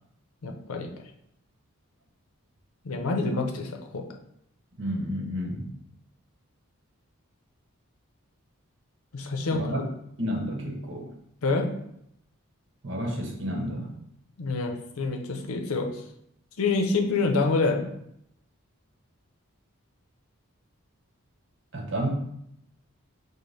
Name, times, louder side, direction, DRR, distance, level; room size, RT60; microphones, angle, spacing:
voice 1, 0.4-0.9 2.8-4.0 9.1-9.8 11.4-11.7 14.4-15.9 16.6-17.9, left 3 dB, 80° left, 3 dB, 0.6 m, -27 dB
voice 2, 4.8-5.7 9.5-9.8 10.2-11.1 12.8-13.9 21.7-22.1, equal, 55° right, 0 dB, 0.9 m, -31 dB
5.1 x 2.1 x 3.9 m, 0.75 s
head